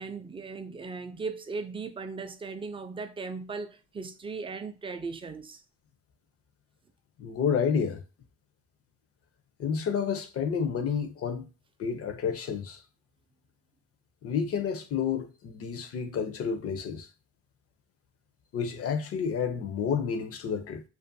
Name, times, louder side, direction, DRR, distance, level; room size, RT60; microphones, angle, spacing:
voice 1, 0.0-5.6, right 4 dB, 20° right, 0.3 m, -37 dB
voice 2, 7.2-8.0 9.6-11.4 11.8-12.8 14.2-17.1 18.5-20.8, left 6 dB, 50° left, 0.5 m, -30 dB
2.5 x 2.4 x 2.6 m
cardioid pair, 90°, 30 cm